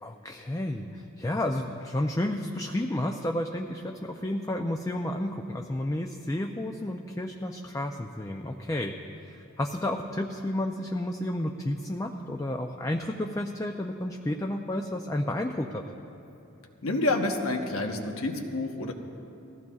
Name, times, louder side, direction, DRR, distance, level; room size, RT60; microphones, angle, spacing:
voice 1, 0.0-8.9 9.2-15.8, left 1 dB, 15° left, 3 dB, 0.4 m, -31 dB
voice 2, 16.8-18.9, left 2 dB, 85° left, 3 dB, 1.1 m, -28 dB
20.5 x 15.0 x 2.4 m, 2.8 s
head